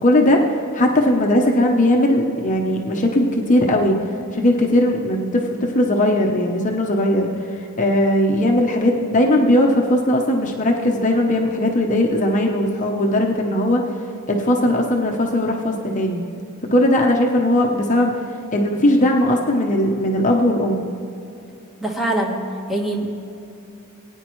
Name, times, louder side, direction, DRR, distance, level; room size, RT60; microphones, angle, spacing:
voice 1, 0.0-0.4 0.7-4.0 4.3-13.8 14.3-16.2 16.7-18.1 18.5-20.9, left 1 dB, 35° left, 1 dB, 0.8 m, -18 dB
voice 2, 21.8-22.4 22.7-23.1, right 1 dB, ahead, -1 dB, 1.3 m, -23 dB
20.0 x 9.5 x 3.1 m, 2.8 s
head